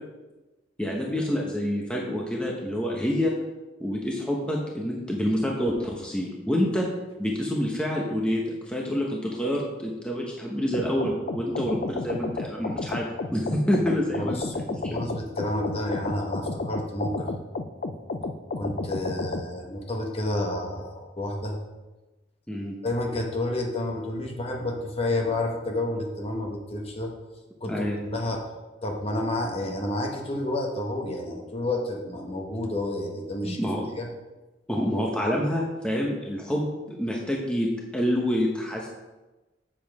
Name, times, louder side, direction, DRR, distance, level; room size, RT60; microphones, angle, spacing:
voice 1, 0.8-3.3 3.8-6.9 7.2-15.0 22.5-22.7 27.6-27.9 33.4-33.8 34.7-38.9, equal, 5° left, -2 dB, 1.0 m, -27 dB
sound 1, 10.7-19.5, left 3 dB, 50° left, 0.5 m, -32 dB
voice 2, 14.2-14.5 14.8-17.3 18.6-21.6 22.8-27.1 27.6-28.4 28.8-33.6 34.0-34.1, left 1 dB, 30° left, 1 dB, 1.3 m, -30 dB
7.4 x 7.0 x 4.8 m, 1.1 s
head